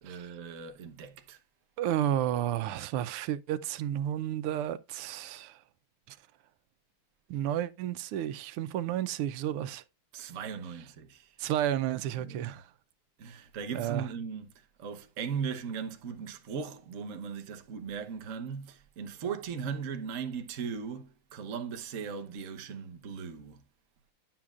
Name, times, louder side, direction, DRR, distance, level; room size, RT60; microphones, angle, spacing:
voice 1, 0.0-1.4 10.1-11.3 12.2-12.5 13.2-14.5 14.8-23.6, right 6 dB, 50° right, 1.1 m, -38 dB
voice 2, 1.8-5.6 6.1-6.2 7.3-9.8 11.4-12.7 13.7-14.1, right 11 dB, 90° right, 1.6 m, -32 dB
10.5 x 7.3 x 2.4 m
omnidirectional pair, 2.4 m